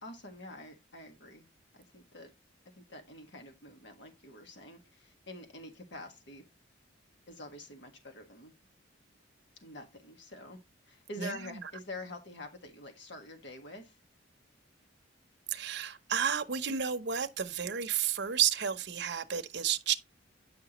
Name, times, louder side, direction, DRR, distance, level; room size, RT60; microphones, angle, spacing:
voice 1, 0.0-2.3 2.7-6.4 7.3-8.5 9.6-10.6 10.9-14.0, left 2 dB, 60° left, 1.6 m, -47 dB
voice 2, 11.2-11.5 15.5-19.9, right 8 dB, 60° right, 0.8 m, -31 dB
9.4 x 5.9 x 3.0 m
head